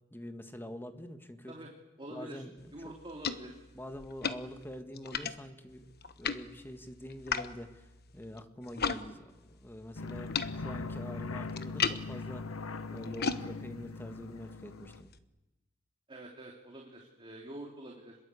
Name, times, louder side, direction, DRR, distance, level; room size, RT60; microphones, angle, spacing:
voice 1, 0.1-1.5 2.1-2.9 3.7-5.8 6.2-12.5 12.9-15.1, equal, 10° left, 8 dB, 1.6 m, -45 dB
voice 2, 2.0-2.4 2.7-3.6 16.1-18.2, right 1 dB, 25° right, 0 dB, 3.0 m, -46 dB
sound 1, 2.6-9.0 9.3-15.2, left 6 dB, 50° left, 1.2 m, -39 dB
sound 2, 10.0-15.0, left 3 dB, 80° left, 1.0 m, -41 dB
27.5 x 21.5 x 8.4 m, 1.1 s
head